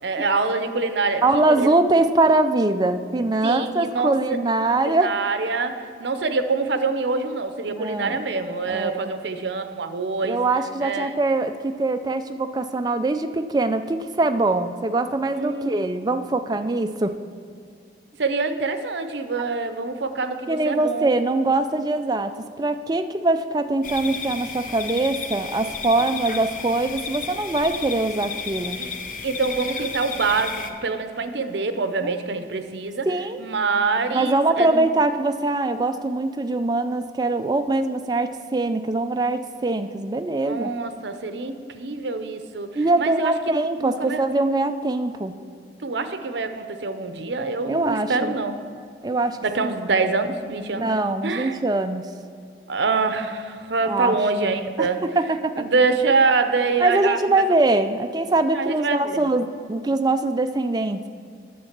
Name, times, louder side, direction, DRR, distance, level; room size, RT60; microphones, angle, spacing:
voice 1, 0.0-1.2 1.6-1.8 3.4-4.4 4.8-10.4 10.8-11.1 15.4-15.9 16.2-16.4 18.2-21.1 26.0-26.1 28.8-28.9 29.2-33.1 33.4-34.8 40.4-44.2 45.8-48.7 49.4-50.9 51.2-51.6 52.7-55.0 55.6-57.2 58.5-59.3, right 4 dB, 70° right, 9 dB, 0.7 m, -25 dB
voice 2, 1.2-5.1 7.8-8.2 8.7-9.1 10.2-17.2 20.5-28.8 32.0-32.1 33.1-33.4 34.1-40.7 42.8-45.3 47.7-48.4 49.0-49.4 49.6-49.7 50.8-52.0 53.9-54.2 54.8-55.7 56.8-61.0, right 2 dB, 20° right, 8 dB, 0.4 m, -23 dB
sound 1, 23.8-30.7, left 5 dB, 45° left, 0.6 m, -33 dB
9.4 x 7.3 x 5.9 m, 2.3 s
head